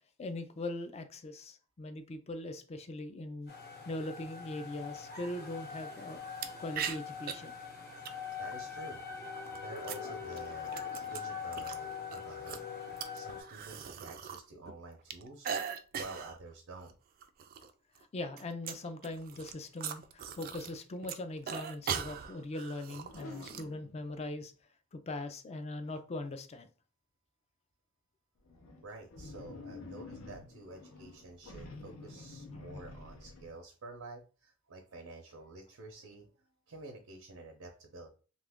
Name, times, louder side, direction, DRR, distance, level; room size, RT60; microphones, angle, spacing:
voice 1, 0.2-3.5 3.9-6.2 6.6-7.5 18.1-24.5 24.9-26.7, left 2 dB, 30° left, 0.4 m, -41 dB
sound 1, 3.5-13.4, left 6 dB, 50° left, 1.0 m, -43 dB
sound 2, 6.4-6.5 6.8-7.3 8.1-8.5 9.4-11.8 12.1-14.4 14.7-16.4 16.8-16.9 17.2-17.7 18.0-20.8 21.0-23.6, right 7 dB, 45° right, 0.3 m, -40 dB
voice 2, 8.4-9.0 9.5-12.7 13.1-15.5 15.9-16.9 28.8-36.3 36.7-38.1, right 2 dB, 80° right, 0.6 m, -49 dB
sound 3, 23.0-24.2 28.4-33.5, left 3 dB, 85° left, 0.7 m, -49 dB
2.8 x 2.4 x 3.5 m
head